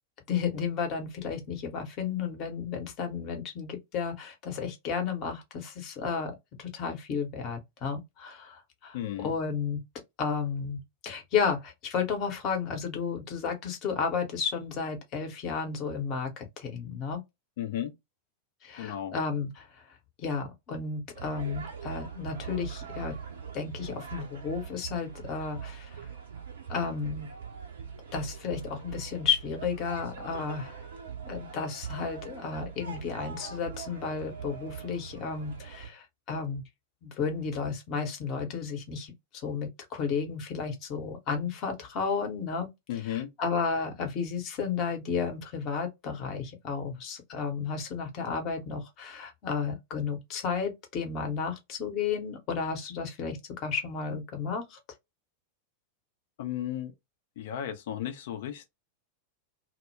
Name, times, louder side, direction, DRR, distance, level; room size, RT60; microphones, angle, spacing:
voice 1, 0.3-6.3 6.6-9.8 10.2-17.2 18.6-19.7 20.2-23.2 23.5-26.0 26.7-27.3 28.1-30.8 31.2-36.6 37.0-54.8, left 6 dB, 40° left, 0.9 m, -33 dB
voice 2, 8.9-9.3 17.6-17.9 18.8-19.1 42.9-43.3 56.4-56.9 57.4-58.7, left 11 dB, 55° left, 0.5 m, -34 dB
sound 1, 21.1-35.9, right 7 dB, 60° right, 0.7 m, -42 dB
2.1 x 2.1 x 3.2 m
figure-of-eight pair, 90°, 0 cm